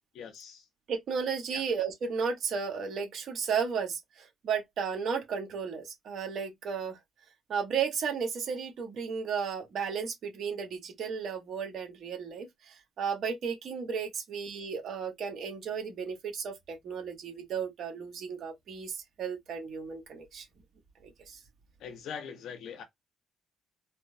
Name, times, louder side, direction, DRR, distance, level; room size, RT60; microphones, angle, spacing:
voice 1, 0.1-0.7 1.5-1.6 21.8-22.8, left 7 dB, 80° left, 1.2 m, -42 dB
voice 2, 0.9-7.0 7.5-20.4 21.0-21.4, right 6 dB, 65° right, 1.6 m, -34 dB
4.3 x 2.3 x 2.8 m
cardioid pair, 90°, 0 cm